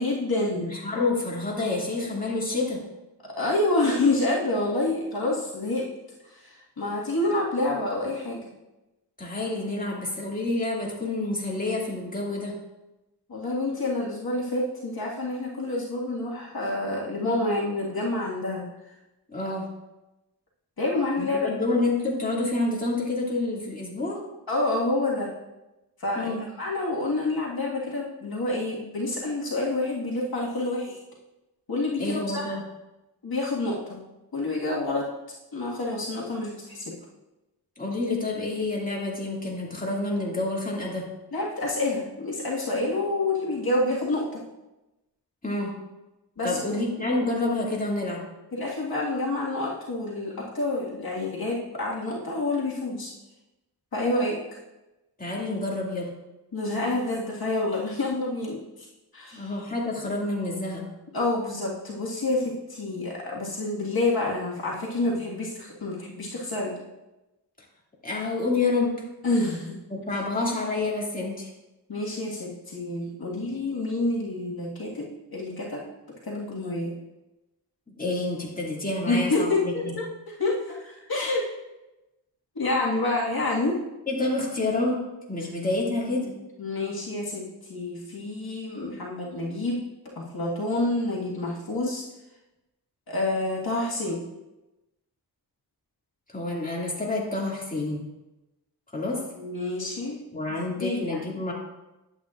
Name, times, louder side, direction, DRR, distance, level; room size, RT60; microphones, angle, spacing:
voice 1, 0.0-0.6 3.2-5.9 6.2-8.4 13.3-18.7 20.8-21.6 24.5-25.3 26.0-31.0 31.7-32.6 33.2-34.0 34.3-35.1 35.5-36.9 41.3-44.4 46.4-46.6 48.5-53.1 53.9-54.4 56.5-58.9 59.1-59.5 61.1-66.7 69.2-69.8 71.9-75.8 76.2-76.9 79.1-80.1 80.4-81.4 82.6-83.8 86.0-86.3 86.6-89.8 90.2-92.0 93.1-94.2 99.3-100.2 100.7-101.4, left 2 dB, 60° left, -4 dB, 1.8 m, -28 dB
voice 2, 0.5-2.8 9.2-12.6 19.3-19.7 21.2-24.2 26.2-26.4 32.0-32.6 37.8-41.1 45.4-45.7 46.4-48.2 55.2-56.1 59.3-60.8 68.0-69.0 69.9-71.5 78.0-79.9 84.1-85.0 85.3-86.3 96.3-98.0 98.9-99.2 100.3-101.5, left 2 dB, 20° left, -4 dB, 2.4 m, -28 dB
11.5 x 8.3 x 2.5 m, 0.99 s
cardioid pair, 65°, 40 cm